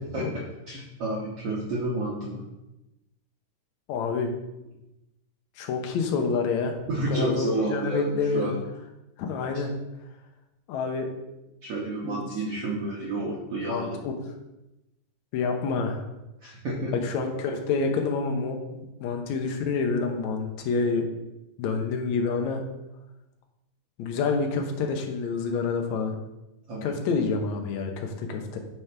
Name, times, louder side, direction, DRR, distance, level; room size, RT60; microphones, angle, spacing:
voice 1, 0.1-2.4 6.9-8.5 11.6-14.0 16.4-16.9 26.7-26.9, right 2 dB, 85° right, -3 dB, 1.3 m, -30 dB
voice 2, 3.9-4.3 5.6-8.5 9.2-9.7 10.7-11.1 12.0-12.2 13.7-14.1 15.3-16.1 17.0-21.0 21.6-22.6 24.0-26.2 26.8-28.6, left 4 dB, 80° left, 3 dB, 1.7 m, -28 dB
9.3 x 6.1 x 3.4 m, 0.95 s
omnidirectional pair, 4.4 m